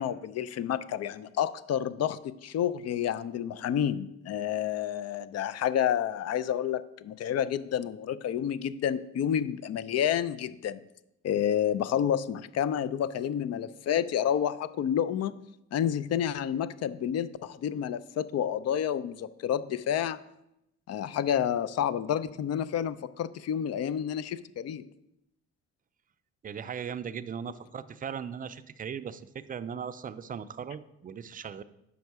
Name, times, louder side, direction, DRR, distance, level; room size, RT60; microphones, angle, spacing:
voice 1, 0.0-10.8 11.2-15.3 15.7-20.2 20.9-24.9, left 9 dB, 55° left, 15 dB, 0.5 m, -29 dB
voice 2, 26.4-31.6, right 7 dB, 30° right, 13 dB, 0.4 m, -38 dB
6.8 x 5.3 x 4.7 m, 0.84 s
cardioid pair, 90°, 30 cm